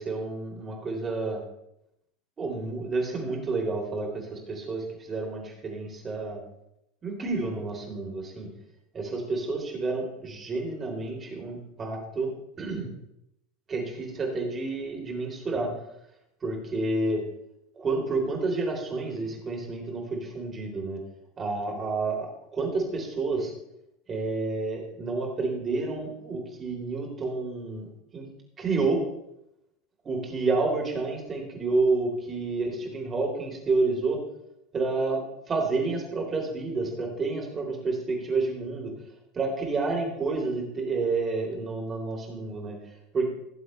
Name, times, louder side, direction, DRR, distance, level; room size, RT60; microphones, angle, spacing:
voice 1, 0.0-1.4 2.4-6.4 7.0-8.5 8.9-12.3 12.6-12.9 13.7-15.7 16.4-17.2 17.7-21.0 21.4-23.5 24.1-28.3 28.6-29.0 30.0-34.2 34.7-38.9 39.3-42.8 43.1-43.3, right 3 dB, 30° right, 0 dB, 4.1 m, -29 dB
19.0 x 7.7 x 3.4 m, 0.80 s
hypercardioid pair, 80°, 0 cm